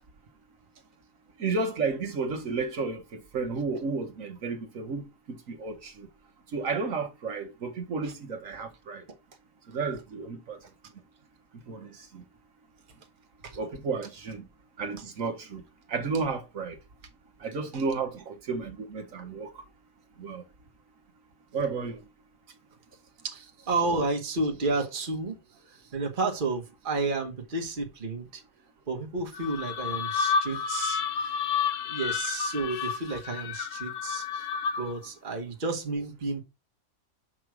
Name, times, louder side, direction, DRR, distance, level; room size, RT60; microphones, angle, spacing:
voice 1, 1.4-6.1 6.5-9.0 9.7-10.6 11.7-12.2 13.6-14.4 14.8-15.6 15.9-16.8 17.4-19.5 20.2-20.4 21.5-22.0, right 4 dB, 70° right, 1.5 m, -32 dB
voice 2, 23.2-25.4 25.7-28.4 28.9-31.3 31.8-34.5 34.8-36.4, right 3 dB, 40° right, 1.4 m, -31 dB
sound 1, 29.3-35.0, left 6 dB, 65° left, 1.1 m, -30 dB
6.3 x 5.4 x 4.6 m
omnidirectional pair, 1.5 m